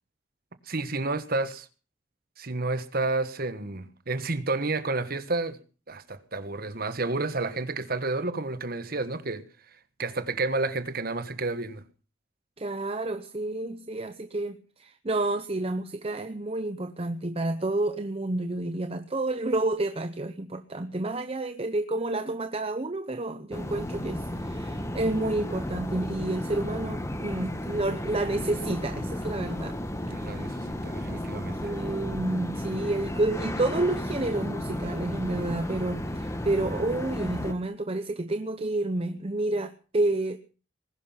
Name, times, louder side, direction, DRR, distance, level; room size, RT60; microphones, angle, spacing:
voice 1, 0.7-1.7 2.4-5.6 5.9-9.4 10.0-11.8 30.0-31.7, right 3 dB, 50° right, 1.5 m, -30 dB
voice 2, 12.6-29.8 30.0-30.4 31.1-40.4, right 2 dB, 30° right, 0.8 m, -30 dB
sound 1, 23.5-37.5, left 1 dB, 15° left, 1.6 m, -33 dB
20.5 x 11.5 x 5.8 m
head